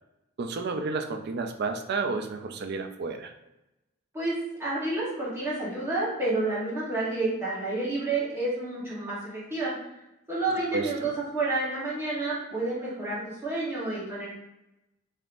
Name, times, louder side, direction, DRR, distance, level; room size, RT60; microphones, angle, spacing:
voice 1, 0.4-3.3 10.7-11.1, right 4 dB, 50° right, 6 dB, 0.4 m, -31 dB
voice 2, 4.1-9.8 10.3-14.3, right 2 dB, 15° right, -9 dB, 0.9 m, -30 dB
3.5 x 2.6 x 2.4 m, 0.94 s
head